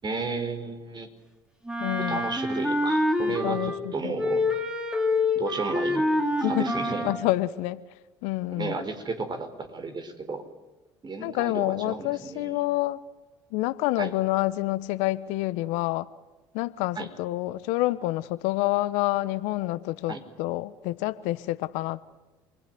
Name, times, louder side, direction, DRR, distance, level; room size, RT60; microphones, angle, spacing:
voice 1, 0.0-1.1 2.0-4.4 5.3-6.1 6.4-7.1 8.5-10.4 11.0-12.6 14.0-14.1 16.9-17.1 20.1-20.2, right 3 dB, 35° right, 7 dB, 5.0 m, -33 dB
Wind instrument woodwind instrument, 1.6-3.9 4.1-7.3, left 2 dB, 5° right, 4.0 m, -26 dB
voice 2, 1.8-2.3 3.3-4.2 6.4-6.7 7.0-7.8 8.2-8.8 11.2-13.0 13.5-16.1 16.5-22.0, left 18 dB, 75° left, 15 dB, 1.0 m, -28 dB
28.5 x 21.0 x 9.4 m, 1.1 s
hypercardioid pair, 65°, 12 cm